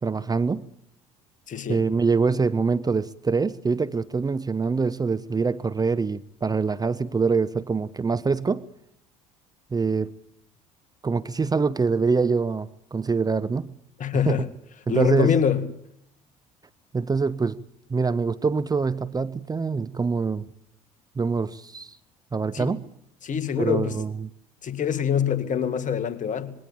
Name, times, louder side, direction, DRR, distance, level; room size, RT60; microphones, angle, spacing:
voice 1, 0.0-0.7 1.7-8.6 9.7-10.1 11.0-13.7 14.3-14.4 14.9-15.3 16.9-17.6 17.9-20.4 21.2-22.0 22.3-22.9 23.6-24.3, right 4 dB, 20° right, 0.8 m, -24 dB
voice 2, 1.5-1.8 14.0-14.5 14.9-15.7 22.5-22.7 23.2-24.0 24.6-26.5, left 8 dB, 45° left, 2.1 m, -24 dB
20.5 x 17.5 x 8.9 m
hypercardioid pair, 60°, 19 cm